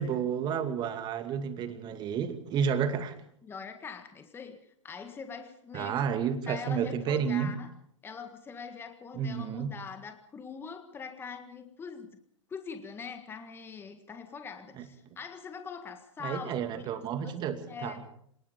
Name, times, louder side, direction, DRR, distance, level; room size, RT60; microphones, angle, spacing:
voice 1, 0.0-3.1 5.7-7.5 9.2-9.7 16.2-18.0, right 7 dB, 25° right, 2.5 m, -31 dB
voice 2, 3.4-6.0 6.5-7.7 8.0-12.2 12.5-16.6 16.9-18.1, left 6 dB, 15° left, 1.7 m, -43 dB
26.5 x 19.5 x 5.2 m
figure-of-eight pair, 110°, 16 cm